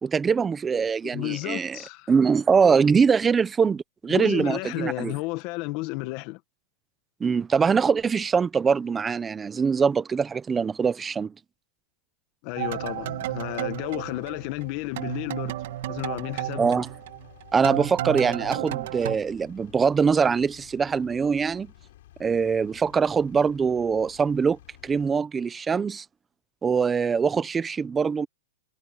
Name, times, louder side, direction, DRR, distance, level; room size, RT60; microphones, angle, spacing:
voice 1, 0.0-1.8 2.1-5.1 7.2-11.3 16.6-16.9 17.5-21.7 22.2-26.0 26.6-28.3, right 6 dB, 15° right, 0.7 m, -23 dB
voice 2, 1.1-2.1 4.1-6.4 12.4-15.6 15.9-16.8, left 21 dB, 40° left, 1.6 m, -32 dB
Engine, 12.5-25.2, left 14 dB, 65° left, 7.6 m, -52 dB
sound 1, 12.6-14.7 15.0-19.2, right 14 dB, 60° right, 1.4 m, -32 dB
supercardioid pair, 155°, 0 cm